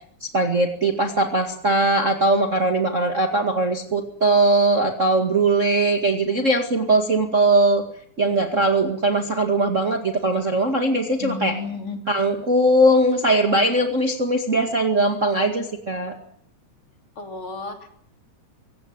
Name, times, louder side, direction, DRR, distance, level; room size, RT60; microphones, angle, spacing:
voice 1, 0.2-7.8 8.2-11.5 12.1-16.2, right 2 dB, 30° right, 4 dB, 1.9 m, -20 dB
voice 2, 11.2-12.0 17.2-17.9, left 4 dB, 40° left, 4 dB, 3.9 m, -32 dB
24.0 x 18.0 x 9.5 m, 0.66 s
omnidirectional pair, 3.7 m